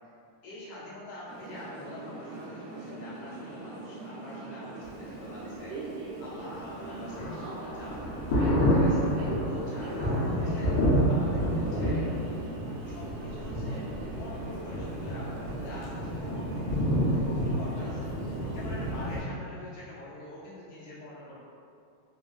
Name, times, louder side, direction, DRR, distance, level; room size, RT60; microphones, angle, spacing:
voice 1, 0.4-8.3 8.7-9.1 9.4-10.8 11.1-12.1 12.8-13.9 14.2-21.4, left 1 dB, 70° left, -8 dB, 1.4 m, -45 dB
sound 1, 1.3-19.0, right 3 dB, 80° right, 1.3 m, -41 dB
Thunder, 6.4-19.2, equal, 85° left, 1.4 m, -29 dB
3.3 x 2.4 x 2.2 m, 2.5 s
omnidirectional pair, 2.2 m